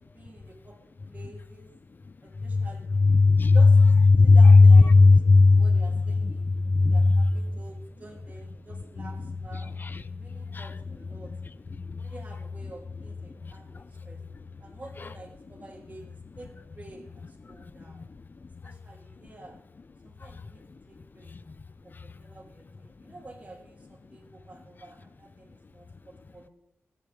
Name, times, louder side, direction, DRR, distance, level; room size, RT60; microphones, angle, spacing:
voice 1, 0.1-0.8 1.1-1.7 2.2-2.9 3.5-3.8 4.2-6.5 6.8-9.7 10.2-11.3 12.0-14.2 14.6-18.0 18.6-19.6 20.0-21.3 21.8-26.5, right 2 dB, 30° right, 3.3 m, -49 dB
voice 2, 2.4-7.3 9.0-10.7 11.1-11.3 11.7-12.1 13.4-13.9 15.0-15.1 17.4-18.7 20.2-20.4 21.3-21.5 21.9-22.1, left 3 dB, 40° left, 0.6 m, -19 dB
25.0 x 9.7 x 3.6 m
wide cardioid pair, 120°, 5 cm